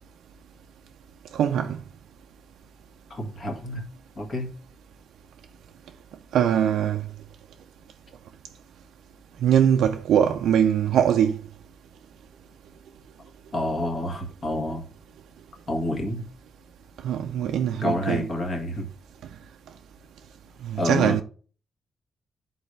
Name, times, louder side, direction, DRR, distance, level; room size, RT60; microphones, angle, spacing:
voice 1, 1.3-1.8 6.3-7.0 9.4-11.4 17.0-18.2 20.6-21.2, right 9 dB, 85° right, 0.5 m, -22 dB
voice 2, 3.1-3.8 4.2-4.5 13.5-14.9 15.7-16.3 17.8-18.9 20.8-21.2, left 1 dB, 40° left, 1.7 m, -28 dB
10.0 x 4.0 x 3.3 m
cardioid pair, 130°, 0 cm